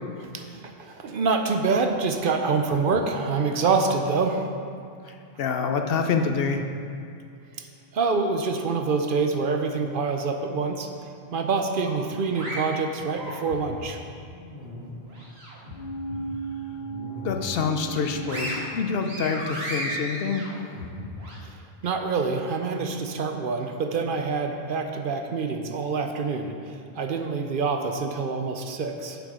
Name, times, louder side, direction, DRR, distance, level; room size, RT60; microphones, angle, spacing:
voice 1, 0.2-4.4 7.6-7.7 7.9-10.9 11.3-14.0 21.8-26.5 27.0-29.2, right 4 dB, 60° right, 5 dB, 0.8 m, -26 dB
voice 2, 5.0-6.6 17.2-20.5, left 5 dB, 70° left, 5 dB, 0.9 m, -26 dB
sound 1, 11.8-13.8 14.3-15.7 16.1-16.3 16.7-17.5 17.9-21.4, equal, 90° right, 1.8 m, -35 dB
sound 2, 15.7-19.5 19.8-19.9, right 4 dB, 20° right, 2.0 m, -36 dB
7.8 x 7.0 x 4.8 m, 2.4 s
omnidirectional pair, 1.0 m